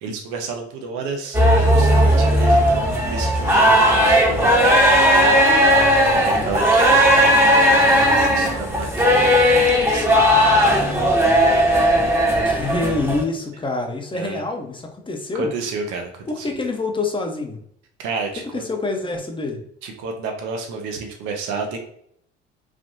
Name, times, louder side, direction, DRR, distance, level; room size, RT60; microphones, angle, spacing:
voice 1, 0.0-1.4 1.7-11.1 14.1-14.4 15.4-16.5 18.0-18.6 19.8-21.8, right 4 dB, 60° right, 3 dB, 0.8 m, -32 dB
sound 1, 1.3-13.2, equal, 5° right, 1.0 m, -16 dB
voice 2, 12.4-15.5 16.3-17.6 18.5-19.6, left 3 dB, 15° left, 3 dB, 0.8 m, -26 dB
3.3 x 2.5 x 2.6 m, 0.68 s
hypercardioid pair, 55°, 33 cm